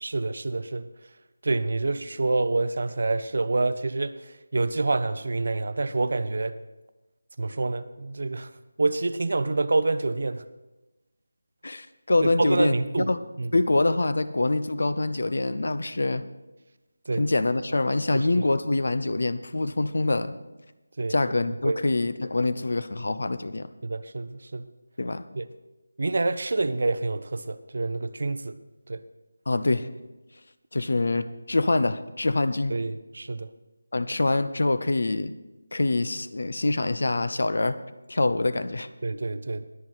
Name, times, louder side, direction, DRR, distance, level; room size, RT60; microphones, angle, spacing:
voice 1, 0.0-0.9 1.4-4.2 4.5-6.5 7.4-8.5 8.8-10.4 12.2-13.1 13.4-13.5 17.1-17.2 18.1-18.3 21.0-21.2 21.6-21.8 23.8-24.7 25.4-25.5 26.0-28.5 28.9-29.0 32.7-33.5 39.0-39.7, right 3 dB, 55° right, 13 dB, 0.7 m, -27 dB
voice 2, 11.6-13.2 13.5-16.2 17.1-20.4 21.1-23.7 25.0-25.2 29.5-29.9 30.7-32.8 33.9-35.3 35.7-37.8 38.1-38.9, left 2 dB, 60° left, 13 dB, 0.7 m, -25 dB
21.0 x 7.3 x 4.1 m, 1.1 s
figure-of-eight pair, 160°, 0 cm